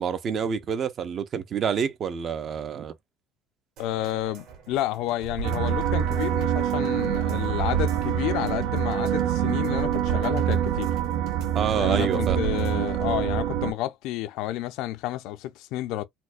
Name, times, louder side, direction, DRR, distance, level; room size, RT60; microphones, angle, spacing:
voice 1, 0.0-2.9 11.5-12.4, right 7 dB, 35° right, 0.5 m, -27 dB
voice 2, 3.8-10.9 11.7-16.0, left 14 dB, 70° left, 0.4 m, -30 dB
sound 1, 3.8-13.2 13.5-13.6, right 8 dB, 65° right, 1.8 m, -39 dB
sound 2, 5.4-13.7, right 10 dB, 90° right, 0.5 m, -25 dB
4.2 x 2.1 x 2.4 m
cardioid pair, 140°, 0 cm